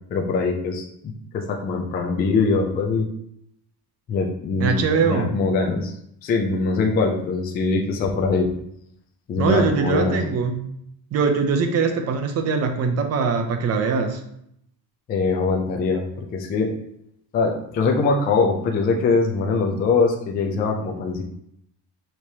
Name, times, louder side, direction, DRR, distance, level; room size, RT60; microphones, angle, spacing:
voice 1, 0.1-3.1 4.1-6.0 6.2-8.5 9.3-10.2 15.1-16.0 16.3-16.7 17.3-21.2, left 4 dB, 25° left, 1 dB, 0.3 m, -22 dB
voice 2, 4.6-5.3 9.4-10.6 11.1-14.2, right 5 dB, 35° right, 6 dB, 0.6 m, -22 dB
6.4 x 3.0 x 2.7 m, 0.74 s
cardioid pair, 165°, 42 cm